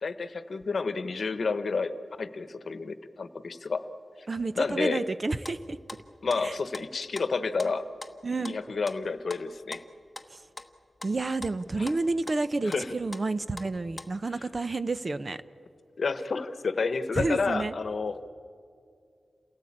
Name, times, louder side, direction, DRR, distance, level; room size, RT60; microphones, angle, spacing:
voice 1, 0.0-3.8 4.2-4.3 4.6-5.0 6.2-7.8 8.4-9.8 11.8-11.9 12.6-12.9 16.0-18.2, left 4 dB, 60° left, 11 dB, 1.1 m, -30 dB
voice 2, 4.3-5.8 6.4-6.5 8.2-8.6 10.3-10.4 11.0-15.4 17.2-17.7, right 3 dB, 35° right, 14 dB, 0.7 m, -30 dB
sound 1, 5.4-14.3, left 2 dB, 20° left, 1.1 m, -45 dB
28.5 x 18.0 x 8.7 m, 2.3 s
wide cardioid pair, 135°, 0 cm